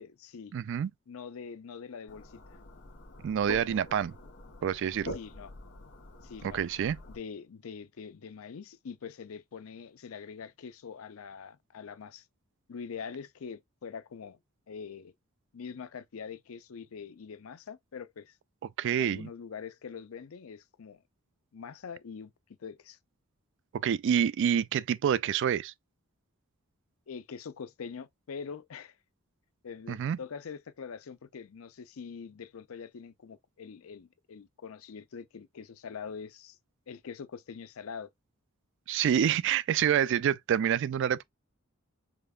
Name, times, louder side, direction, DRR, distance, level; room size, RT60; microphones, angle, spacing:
voice 1, 0.0-0.5 1.1-2.6 5.1-5.5 6.2-6.6 7.1-12.3 12.7-14.4 14.7-15.1 15.5-18.4 18.9-21.0 21.5-22.3 22.6-23.0 27.1-29.0 29.6-36.6 36.9-38.1, left 6 dB, 70° left, 0.5 m, -44 dB
voice 2, 0.5-0.9 3.2-4.1 4.6-5.2 6.5-7.0 18.8-19.3 23.7-25.7 29.9-30.2 38.9-41.2, right 9 dB, 60° right, 0.3 m, -27 dB
sound 1, 2.1-7.2, left 1 dB, 55° left, 0.9 m, -45 dB
5.1 x 2.3 x 2.3 m
head